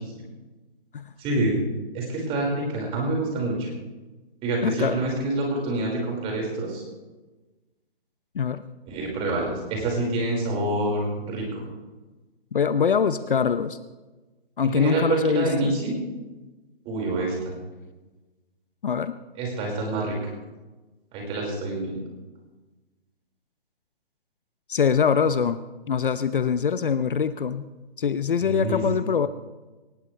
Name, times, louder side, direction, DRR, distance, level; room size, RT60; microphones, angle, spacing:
voice 1, 1.2-1.6 1.9-3.7 4.4-6.8 8.9-11.7 14.6-15.9 16.8-17.6 19.4-20.2 21.1-22.0 28.4-28.8, right 2 dB, 20° right, -1 dB, 5.2 m, -27 dB
voice 2, 4.6-5.0 8.3-8.6 12.5-13.8 14.6-15.8 18.8-19.2 24.7-25.6 25.9-27.7 28.0-29.3, left 6 dB, 55° left, 12 dB, 0.9 m, -23 dB
20.0 x 19.5 x 3.3 m, 1.2 s
figure-of-eight pair, 145°, 31 cm